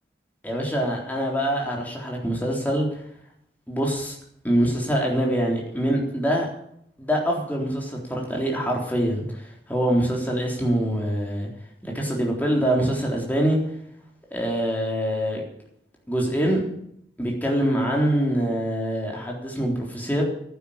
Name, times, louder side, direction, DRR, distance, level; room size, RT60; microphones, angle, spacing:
voice 1, 0.4-3.0 3.7-4.2 4.4-6.5 7.0-11.5 11.8-13.6 14.3-15.4 16.1-16.6 17.2-20.2, equal, 10° left, -1 dB, 3.7 m, -24 dB
12.0 x 10.0 x 8.8 m, 0.70 s
head